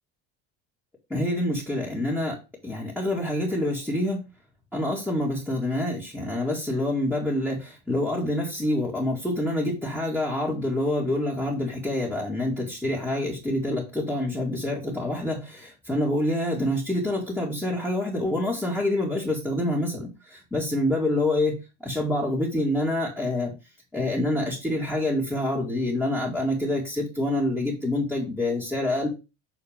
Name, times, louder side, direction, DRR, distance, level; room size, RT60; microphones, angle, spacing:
voice 1, 1.1-2.4 2.6-4.2 4.7-23.5 23.9-29.1, left 1 dB, 5° left, -5 dB, 2.3 m, -27 dB
7.2 x 4.5 x 5.1 m, 0.28 s
cardioid pair, 135°, 36 cm